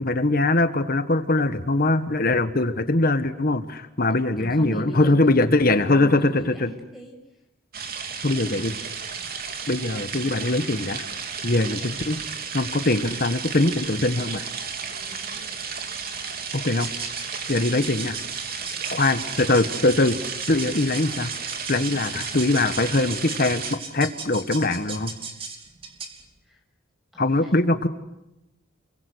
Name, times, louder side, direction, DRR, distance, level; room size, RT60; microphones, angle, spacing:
voice 1, 0.0-6.2 6.5-6.7 8.2-8.7 9.7-11.0 11.4-12.2 12.5-14.4 16.5-16.9 17.5-18.2 18.9-20.2 20.5-21.3 21.7-25.1 27.2-27.9, left 2 dB, 45° left, 9 dB, 1.5 m, -22 dB
voice 2, 4.4-7.2 9.2-9.3 14.9-16.4 18.6-19.6 21.8-22.2 26.4-26.6 27.1-27.6, right 1 dB, ahead, 2 dB, 6.5 m, -41 dB
sound 1, 7.7-23.8, right 6 dB, 50° right, 3.3 m, -33 dB
sound 2, 16.8-26.3, right 5 dB, 30° right, 3.4 m, -38 dB
29.5 x 23.5 x 8.1 m, 0.91 s
head